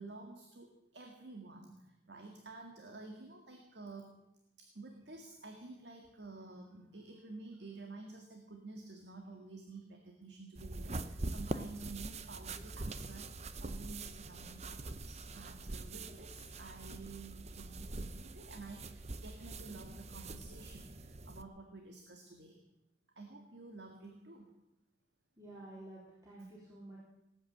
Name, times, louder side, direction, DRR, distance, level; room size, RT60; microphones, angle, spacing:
voice 1, 0.0-4.1 4.6-22.6 23.2-24.5, right 3 dB, 60° right, 3 dB, 1.9 m, -51 dB
sound 1, 10.5-21.4, right 2 dB, 35° right, 0.7 m, -44 dB
voice 2, 25.4-27.0, right 1 dB, 15° right, -6 dB, 3.6 m, -51 dB
19.0 x 9.0 x 7.8 m, 0.89 s
head